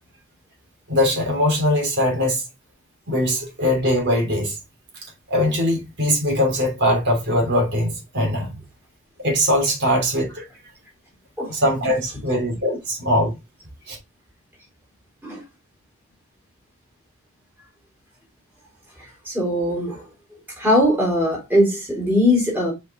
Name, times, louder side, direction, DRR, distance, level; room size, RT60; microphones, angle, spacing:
voice 1, 0.9-2.4 3.1-4.6 5.3-8.5 9.2-10.4 11.5-13.3 13.9-14.0, left 1 dB, 50° right, 3.3 m, -21 dB
voice 2, 19.0-20.0 20.6-22.7, left 1 dB, 10° right, 3.4 m, -20 dB
5.9 x 5.1 x 3.8 m
head